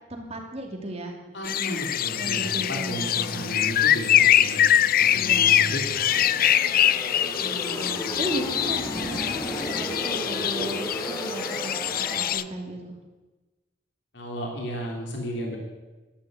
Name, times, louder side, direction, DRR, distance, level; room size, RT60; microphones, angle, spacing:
voice 1, 0.1-1.2 2.1-3.6 5.1-5.8 7.4-13.0, right 1 dB, 35° right, 2 dB, 2.7 m, -36 dB
voice 2, 1.3-6.4 14.1-15.6, equal, 65° left, 0 dB, 3.2 m, -34 dB
sound 1, 1.4-12.4, left 11 dB, 50° left, 0.5 m, -23 dB
sound 2, 6.0-12.3, equal, 20° left, 2.8 m, -34 dB
12.5 x 11.5 x 8.2 m, 1.2 s
head